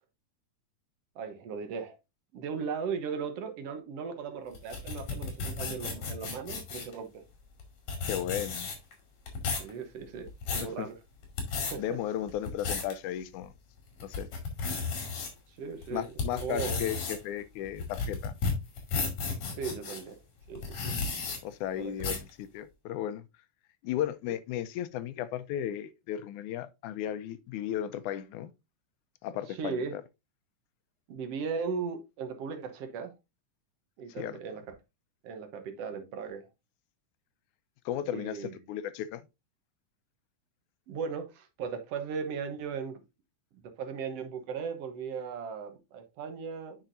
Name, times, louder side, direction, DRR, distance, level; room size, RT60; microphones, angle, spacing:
voice 1, 1.2-2.0 2.3-7.3 9.6-11.0 11.7-12.0 15.6-16.1 16.4-16.8 19.6-20.2 20.5-21.0 21.8-21.9 29.6-29.9 31.1-33.1 34.0-34.8 35.2-36.5 38.1-38.6 40.9-43.0 43.5-46.8, right 5 dB, 60° right, 1.9 m, -37 dB
sound 1, 4.5-6.9 7.6-7.7 7.9-8.9 9.3-9.7 10.2-10.7 11.2-11.7 12.3-12.9 13.4-13.5 14.0-15.3 15.8-20.0 20.6-21.4 22.0-22.3, left 4 dB, 65° left, 3.6 m, -33 dB
voice 2, 8.1-8.7 10.6-10.9 11.8-13.5 14.0-14.3 14.6-14.7 15.9-18.3 21.4-23.3 23.8-28.5 29.2-30.0 34.2-34.4 37.9-39.2, left 11 dB, 85° left, 2.1 m, -35 dB
8.7 x 5.9 x 2.6 m
omnidirectional pair, 3.5 m